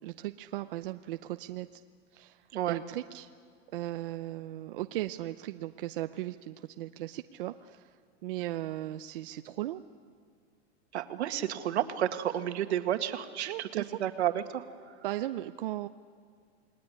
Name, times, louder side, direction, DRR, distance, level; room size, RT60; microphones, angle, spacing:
voice 1, 0.0-1.8 2.1-3.3 3.7-9.8 13.5-14.0 15.0-15.9, right 15 dB, 50° right, 9 dB, 0.7 m, -37 dB
voice 2, 10.9-14.6, right 11 dB, 75° right, 7 dB, 2.1 m, -31 dB
29.0 x 20.5 x 10.0 m, 2.1 s
supercardioid pair, 170°, 33 cm